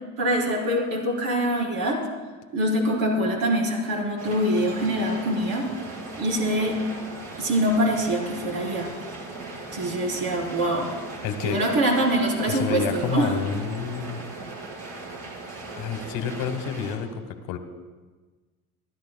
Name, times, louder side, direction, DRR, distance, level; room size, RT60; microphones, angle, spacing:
voice 1, 0.2-2.0 2.5-5.7 6.2-6.8 7.4-8.9 9.7-10.9 11.4-13.3, right 1 dB, 55° right, -3 dB, 4.2 m, -24 dB
sound 1, 4.2-17.0, right 2 dB, 40° right, 4.3 m, -38 dB
voice 2, 11.2-11.6 12.5-14.3 15.8-17.6, left 7 dB, 60° left, 7 dB, 1.5 m, -29 dB
30.0 x 12.0 x 2.3 m, 1.3 s
hypercardioid pair, 85°, 41 cm